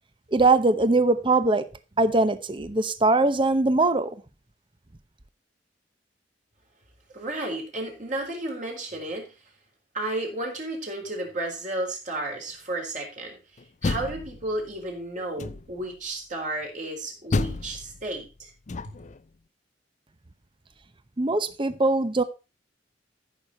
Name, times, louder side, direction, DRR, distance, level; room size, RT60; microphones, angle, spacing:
voice 1, 0.3-1.7 2.0-4.2 21.2-22.2, right 2 dB, 30° right, 0.8 m, -21 dB
voice 2, 7.1-9.3 9.9-13.4 13.8-18.5 18.8-18.9, right 1 dB, 45° right, 4.2 m, -32 dB
Door, 13.6-14.8 15.4-15.9 17.3-19.2, left 3 dB, 40° left, 0.5 m, -31 dB
14.0 x 6.5 x 4.3 m
head